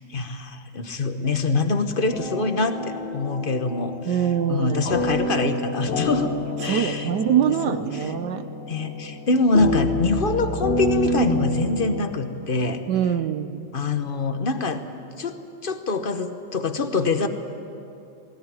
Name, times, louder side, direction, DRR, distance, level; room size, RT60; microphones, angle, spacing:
voice 1, 0.1-4.2 4.5-6.3 6.6-7.1 7.6-8.1 8.7-12.8 13.7-14.8 15.2-17.3, left 3 dB, 35° left, 8 dB, 1.0 m, -24 dB
sound 1, 2.1-12.0, left 1 dB, 75° left, 2.1 m, -28 dB
voice 2, 4.1-4.8 6.6-8.5 12.9-13.7, right 9 dB, 70° right, 11 dB, 1.3 m, -24 dB
19.5 x 17.5 x 9.7 m, 2.7 s
omnidirectional pair, 2.0 m